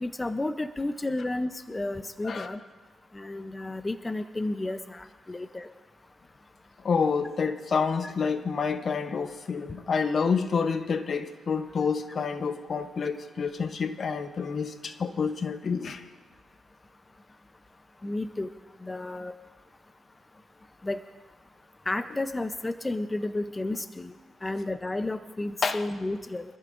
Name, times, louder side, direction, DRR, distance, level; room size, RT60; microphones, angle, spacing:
voice 1, 0.0-2.6 3.1-5.7 8.0-8.1 18.0-18.5 18.8-19.3 20.8-21.0 21.9-24.1 24.4-26.4, left 2 dB, 20° left, 0.6 m, -32 dB
voice 2, 2.2-2.5 6.8-16.0 25.6-25.8, left 5 dB, 50° left, 0.8 m, -28 dB
25.5 x 14.0 x 2.6 m
cardioid pair, 80°, 0 cm